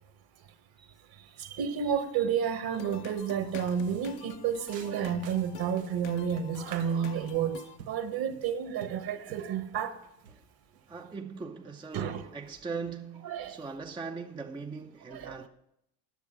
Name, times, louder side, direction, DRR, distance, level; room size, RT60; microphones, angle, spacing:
voice 1, 1.6-7.6 7.9-9.9 11.9-12.2 13.2-13.5 15.2-15.3, right 8 dB, 45° right, 1.3 m, -30 dB
sound 1, 2.7-7.8, left 13 dB, 55° left, 0.7 m, -48 dB
sound 2, 2.7-3.0 3.4-11.0, right 8 dB, 80° right, 1.0 m, -51 dB
voice 2, 10.9-15.5, right 5 dB, 10° right, 0.5 m, -40 dB
10.0 x 6.9 x 6.0 m
hypercardioid pair, 70°, 49 cm